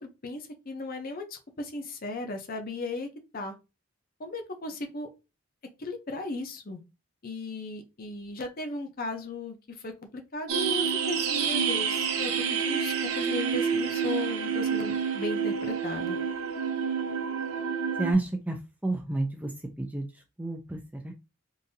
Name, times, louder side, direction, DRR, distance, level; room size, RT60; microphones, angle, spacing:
voice 1, 0.0-3.5 4.2-5.1 5.8-6.8 7.2-16.2, left 2 dB, 40° left, 5 dB, 0.6 m, -36 dB
sound 1, 10.5-18.1, right 6 dB, 75° right, 0.7 m, -28 dB
voice 2, 18.0-18.6 18.8-19.5 19.8-20.0 20.4-20.8 21.0-21.1, right 2 dB, 5° right, 4 dB, 0.3 m, -29 dB
3.8 x 2.6 x 2.6 m, 0.28 s
head